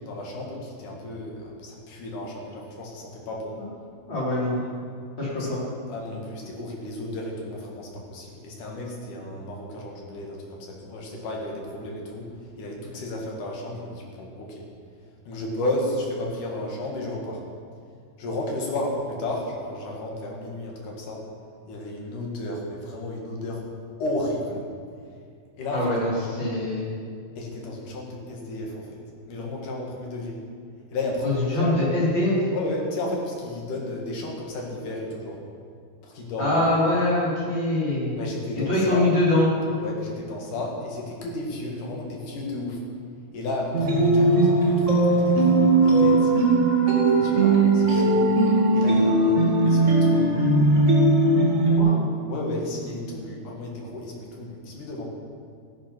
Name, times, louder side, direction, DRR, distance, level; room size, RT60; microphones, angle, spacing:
voice 1, 0.0-3.6 5.2-5.5 5.9-12.3 12.6-14.6 15.3-17.4 18.2-21.2 21.7-23.6 24.0-24.6 25.6-26.4 27.4-28.9 29.3-30.4 30.9-31.9 32.5-35.4 36.0-36.5 38.2-39.1 39.8-42.8 43.3-45.7 46.0-46.3 47.1-48.2 48.7-50.4 52.3-55.0, left 1 dB, 60° left, -1 dB, 3.4 m, -33 dB
voice 2, 4.1-4.6 5.2-5.6 25.7-26.9 31.2-32.4 36.4-38.2 38.5-39.5 51.8-51.9, left 1 dB, 30° left, -7 dB, 4.5 m, -23 dB
sound 1, 43.7-51.8, right 2 dB, 25° right, 1.7 m, -19 dB
14.0 x 10.5 x 6.1 m, 2.2 s
omnidirectional pair, 4.3 m